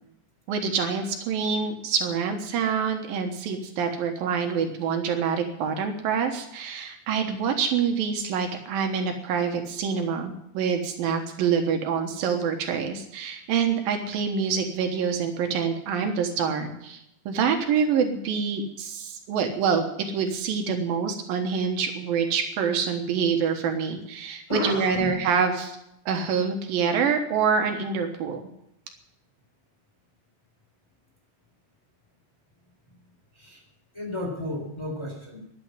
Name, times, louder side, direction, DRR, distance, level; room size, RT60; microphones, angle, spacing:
voice 1, 0.5-19.9 20.1-25.8 26.1-28.4, right 6 dB, 75° right, 5 dB, 3.0 m, -26 dB
voice 2, 24.5-25.1 33.3-33.6 33.9-35.4, left 1 dB, 5° left, -1 dB, 3.5 m, -32 dB
11.5 x 9.3 x 9.7 m, 0.79 s
omnidirectional pair, 4.2 m